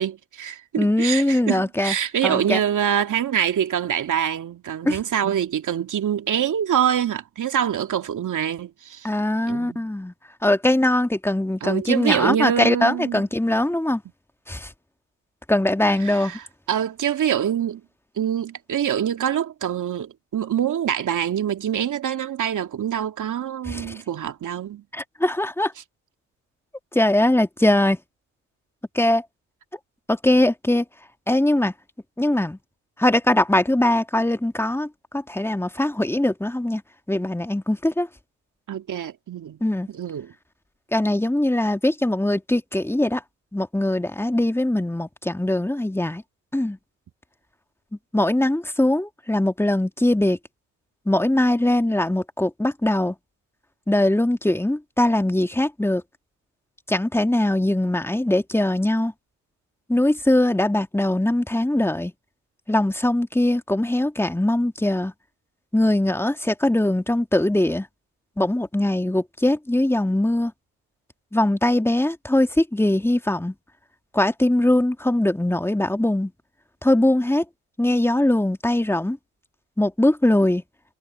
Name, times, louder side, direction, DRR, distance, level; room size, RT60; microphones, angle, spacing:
voice 1, 0.0-9.1 9.5-9.9 11.6-13.2 16.0-17.8 18.2-24.8 38.7-39.6 39.9-40.3, right 9 dB, 60° right, 2.7 m, -25 dB
voice 2, 0.8-1.9 2.2-2.6 4.8-5.0 9.0-10.1 10.4-14.0 14.5-14.7 15.5-16.4 23.7-23.9 24.9-25.7 26.9-28.0 28.9-29.2 30.1-30.8 31.3-31.7 32.2-32.6 33.0-34.9 35.1-36.8 37.1-38.1 39.6-39.9 40.9-43.2 43.5-46.2 46.5-46.8 48.1-50.4 51.1-53.1 53.9-56.0 56.9-59.1 59.9-62.1 62.7-65.1 65.7-67.9 68.4-70.5 71.3-73.5 74.1-76.3 76.8-77.4 77.8-79.2 79.8-80.6, left 1 dB, 5° left, 2.4 m, -21 dB
hypercardioid pair, 50°, 35 cm